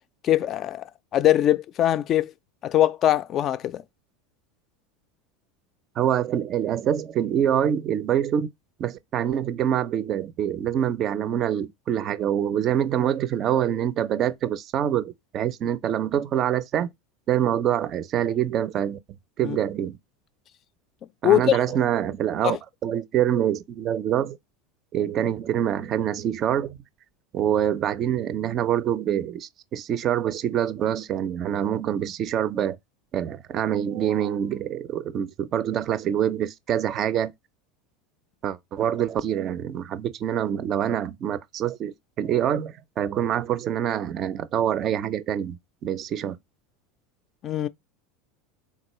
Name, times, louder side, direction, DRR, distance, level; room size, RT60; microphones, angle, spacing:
voice 1, 0.2-0.8 1.1-2.3 2.6-3.8 19.4-19.6 21.2-21.6 22.4-22.6 47.4-47.7, left 12 dB, 45° left, 0.3 m, -21 dB
voice 2, 6.0-8.5 8.8-16.9 17.3-19.0 19.4-20.0 21.2-22.6 22.8-24.4 24.9-26.8 27.3-32.8 33.1-37.3 38.4-46.4, right 10 dB, 45° right, 0.4 m, -25 dB
3.7 x 2.3 x 3.0 m
hypercardioid pair, 90°, 0 cm